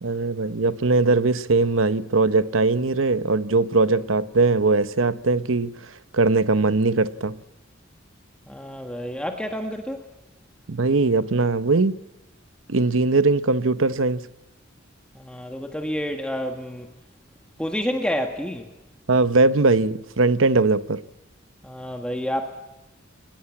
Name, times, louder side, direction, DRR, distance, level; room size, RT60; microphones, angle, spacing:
voice 1, 0.0-7.4 10.7-12.0 12.7-14.3 19.1-21.0, right 3 dB, 75° right, 0.9 m, -20 dB
voice 2, 8.5-10.0 15.1-16.9 17.6-18.7 21.6-22.4, equal, 5° left, 1.6 m, -29 dB
22.5 x 20.0 x 8.6 m
head